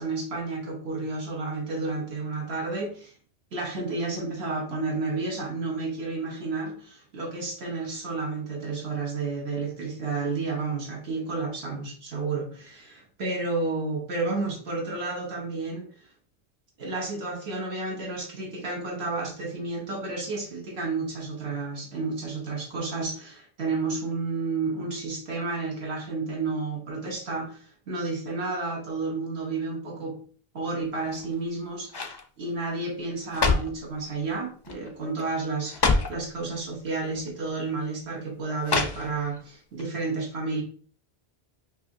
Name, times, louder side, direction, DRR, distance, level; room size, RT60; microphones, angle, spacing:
voice 1, 0.0-3.1 3.5-16.1 16.8-30.2 30.5-40.6, right 3 dB, 80° right, -1 dB, 1.2 m, -31 dB
sound 1, 31.0-31.5 31.9-32.2 33.0-33.8 34.6-34.9 35.2-35.3 35.6-36.2 37.2-37.3 38.6-39.4 39.8-39.9, left 4 dB, 45° left, 0.3 m, -26 dB
5.3 x 2.8 x 2.5 m, 0.43 s
omnidirectional pair, 1.1 m